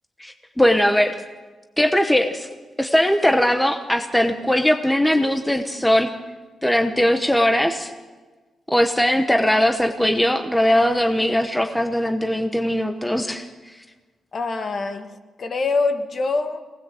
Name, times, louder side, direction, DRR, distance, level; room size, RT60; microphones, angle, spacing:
voice 1, 0.2-1.2 1.8-2.5 2.8-6.1 6.6-7.9 8.7-13.5, left 1 dB, 5° left, 6 dB, 1.0 m, -20 dB
voice 2, 14.3-16.6, left 3 dB, 40° left, 7 dB, 1.6 m, -25 dB
25.0 x 19.0 x 7.7 m, 1.3 s
wide cardioid pair, 150°, 0 cm